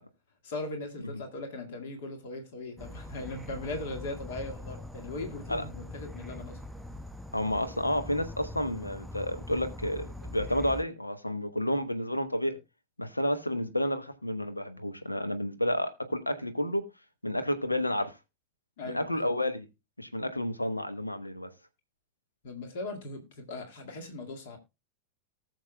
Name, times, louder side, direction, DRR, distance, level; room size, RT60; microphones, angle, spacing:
voice 1, 0.4-6.6 18.8-19.3 22.4-24.6, left 2 dB, 55° left, 2.0 m, -39 dB
Insect / Frog, 2.8-10.8, left 1 dB, 5° right, 0.6 m, -42 dB
voice 2, 7.3-12.6 13.0-16.8 17.2-18.1 18.8-19.6 20.0-21.5, left 1 dB, 85° left, 1.0 m, -30 dB
19.0 x 6.6 x 2.2 m
figure-of-eight pair, 90°, 0 cm